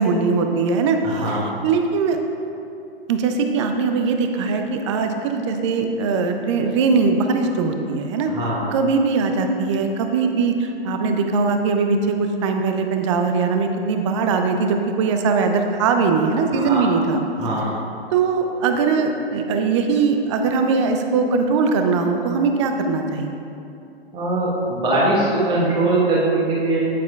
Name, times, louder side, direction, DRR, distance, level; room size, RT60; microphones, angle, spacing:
voice 1, 0.0-2.2 3.1-8.3 8.7-17.2 18.1-23.4, right 4 dB, 30° right, 5 dB, 0.5 m, -21 dB
voice 2, 1.0-1.5 8.3-8.6 16.5-16.9 17.4-17.7 24.1-26.8, right 2 dB, 15° right, -7 dB, 1.3 m, -21 dB
9.1 x 9.0 x 2.4 m, 2.7 s
figure-of-eight pair, 120°, 31 cm